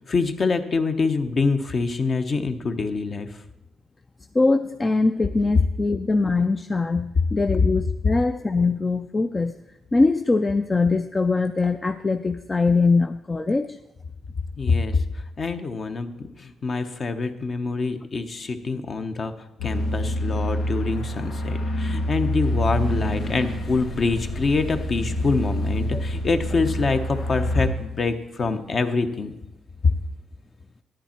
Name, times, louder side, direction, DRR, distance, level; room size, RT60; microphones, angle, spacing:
voice 1, 0.0-3.4 14.6-19.3 19.6-29.3 29.8-29.9, left 4 dB, 40° left, 8 dB, 0.9 m, -25 dB
voice 2, 4.3-9.6 9.9-13.8 18.7-18.8 25.9-26.0, left 3 dB, 25° left, 8 dB, 0.4 m, -22 dB
sound 1, 19.6-27.7, left 1 dB, 80° left, 1.6 m, -27 dB
10.0 x 10.0 x 4.4 m, 0.92 s
cardioid pair, 90°, 0 cm